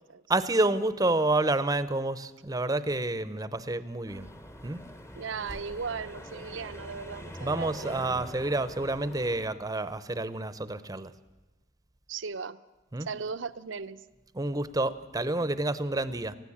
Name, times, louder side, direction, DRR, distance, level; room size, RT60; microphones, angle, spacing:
voice 1, 0.3-4.3 4.6-4.8 7.4-11.1 12.9-13.1 14.3-16.4, right 2 dB, 20° right, 14 dB, 0.8 m, -29 dB
sound 1, 4.1-9.5, equal, 15° left, 1.0 m, -44 dB
voice 2, 5.2-8.0 8.4-8.5 12.1-12.6 13.1-14.0, right 5 dB, 75° right, 13 dB, 0.7 m, -37 dB
19.5 x 15.5 x 8.7 m, 1.1 s
head